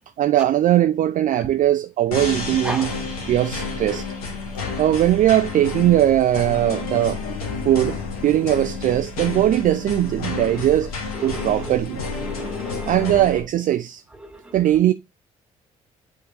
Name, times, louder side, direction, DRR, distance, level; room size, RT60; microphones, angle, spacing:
voice 1, 0.2-2.9 3.3-4.0 4.8-7.2 7.6-10.9 11.2-12.0 12.9-14.0 14.5-14.9, right 12 dB, 45° right, 0.5 m, -19 dB
sound 1, 2.1-13.4, left 4 dB, 75° left, 1.3 m, -30 dB
voice 2, 11.1-11.5 12.2-13.0 14.2-14.6, right 1 dB, 5° right, 1.7 m, -34 dB
8.0 x 3.9 x 3.6 m
figure-of-eight pair, 45°, 19 cm